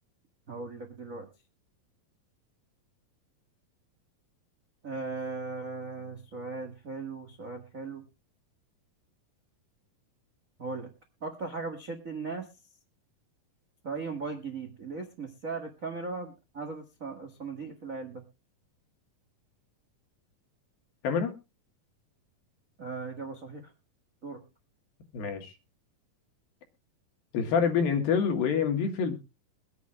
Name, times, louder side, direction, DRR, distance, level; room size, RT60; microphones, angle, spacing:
voice 1, 0.5-1.3 4.8-8.0 10.6-10.9 11.2-12.5 13.8-18.2 22.8-23.7 24.2-24.4, right 4 dB, 70° right, 4 dB, 0.7 m, -38 dB
voice 2, 21.0-21.3 25.1-25.5 27.3-29.2, left 6 dB, 80° left, 5 dB, 3.4 m, -26 dB
23.0 x 8.2 x 2.3 m, 0.28 s
omnidirectional pair, 4.2 m